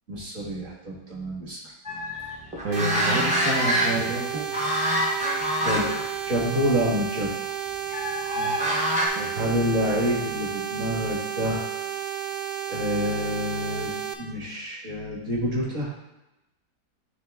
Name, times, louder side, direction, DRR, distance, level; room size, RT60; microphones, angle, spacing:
voice 1, 0.1-1.6 5.6-5.9 6.3-7.5 9.4-11.7 12.7-15.9, equal, 50° right, -3 dB, 1.8 m, -27 dB
sound 1, 1.8-4.2 4.5-6.0 6.4-6.6 7.9-9.1, equal, 10° right, 0.5 m, -26 dB
voice 2, 2.6-4.5 8.3-8.6 9.1-9.3, right 2 dB, 65° right, -4 dB, 1.5 m, -29 dB
sound 2, 2.7-14.1, right 9 dB, 80° right, 1.2 m, -32 dB
9.5 x 3.2 x 3.5 m, 0.96 s
omnidirectional pair, 1.8 m